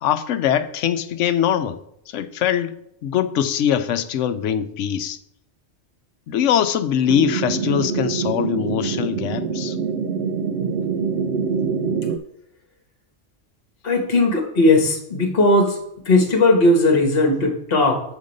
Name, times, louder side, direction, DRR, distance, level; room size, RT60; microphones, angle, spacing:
voice 1, 0.0-1.8 2.1-2.8 3.0-5.2 6.3-9.8, left 9 dB, 75° left, 0.9 m, -22 dB
sound 1, 7.1-12.2, right 5 dB, 65° right, 0.9 m, -25 dB
voice 2, 13.8-15.8 16.0-18.2, left 2 dB, 50° left, 1.5 m, -17 dB
7.1 x 5.2 x 5.2 m
omnidirectional pair, 1.3 m